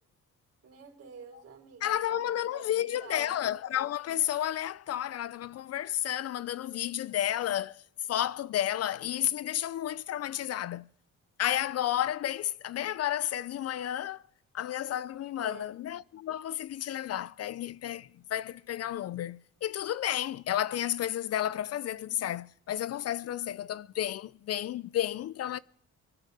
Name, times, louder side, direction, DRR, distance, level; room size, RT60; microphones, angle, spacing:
voice 1, 0.6-2.2 2.5-3.6 15.4-15.7, right 6 dB, 55° right, 4.0 m, -48 dB
voice 2, 1.8-7.8 8.1-10.9 11.4-14.2 14.5-25.6, left 11 dB, 55° left, 0.5 m, -32 dB
24.5 x 9.9 x 4.2 m
cardioid pair, 90°, 30 cm